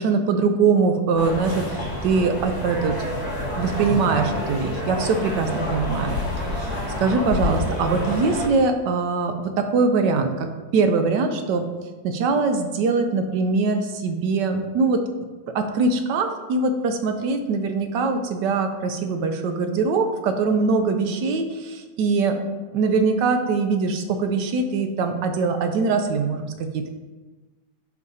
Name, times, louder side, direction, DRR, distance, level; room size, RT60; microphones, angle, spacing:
voice 1, 0.0-3.0 3.6-10.5 10.7-11.6 12.0-15.0 15.5-22.4 22.7-26.9, right 4 dB, 75° right, 6 dB, 1.2 m, -22 dB
sound 1, 1.1-8.5, left 1 dB, 55° left, 3.1 m, -28 dB
11.0 x 4.8 x 2.7 m, 1.3 s
omnidirectional pair, 1.9 m